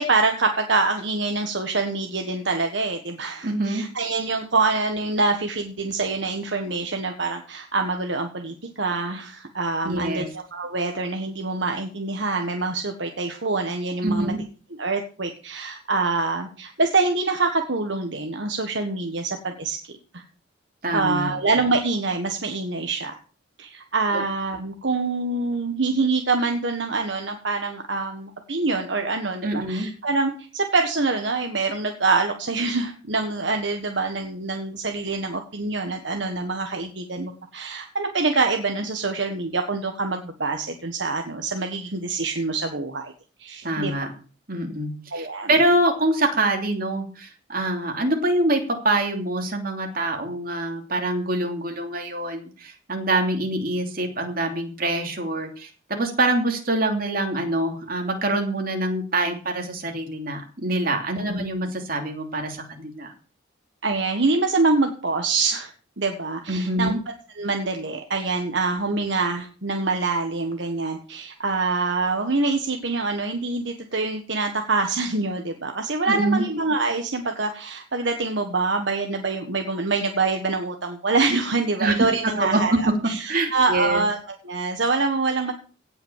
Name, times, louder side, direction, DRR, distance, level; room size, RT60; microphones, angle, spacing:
voice 1, 0.0-14.3 14.8-20.2 20.9-23.1 23.6-43.1 43.4-43.9 45.1-45.5 61.2-61.4 63.8-65.7 66.0-66.9 67.3-84.2 84.4-85.5, right 3 dB, 65° right, 4 dB, 1.5 m, -25 dB
voice 2, 3.4-3.8 9.8-10.3 14.0-14.4 20.8-21.3 24.1-24.2 29.4-29.9 43.6-44.1 44.5-63.1 66.5-67.0 76.1-76.4 81.8-82.0 82.4-82.8 83.3-84.0, right 1 dB, 50° right, 3 dB, 2.9 m, -25 dB
17.5 x 6.0 x 7.4 m, 0.39 s
head